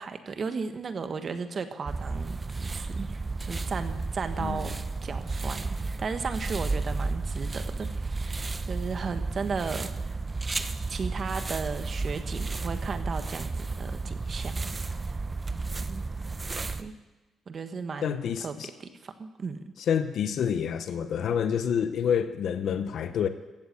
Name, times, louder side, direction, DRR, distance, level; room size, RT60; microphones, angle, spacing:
voice 1, 0.0-3.1 3.4-4.7 5.0-10.2 10.9-14.8 15.5-16.0 16.8-16.9 17.5-19.6, right 5 dB, 45° right, 8 dB, 1.4 m, -35 dB
sound 1, 1.9-16.8, right 3 dB, 25° right, 0.8 m, -32 dB
voice 2, 18.0-18.7 19.9-23.3, left 8 dB, 65° left, 10 dB, 0.8 m, -28 dB
15.0 x 8.2 x 8.0 m, 1.1 s
cardioid pair, 90°, 0 cm